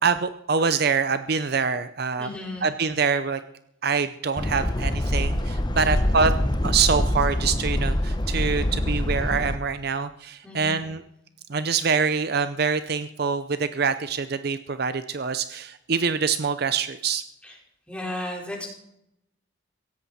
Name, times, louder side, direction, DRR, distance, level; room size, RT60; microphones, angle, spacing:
voice 1, 0.0-2.3 2.6-3.4 3.8-6.3 6.6-11.0 11.5-17.2, right 5 dB, 50° right, 11 dB, 0.6 m, -25 dB
voice 2, 2.2-2.7 5.8-6.1 10.4-10.8 17.4-17.6 17.9-18.7, left 1 dB, 5° left, -2 dB, 4.4 m, -35 dB
sound 1, 4.4-9.6, left 1 dB, 20° left, 0.9 m, -25 dB
17.0 x 15.5 x 4.2 m, 0.79 s
head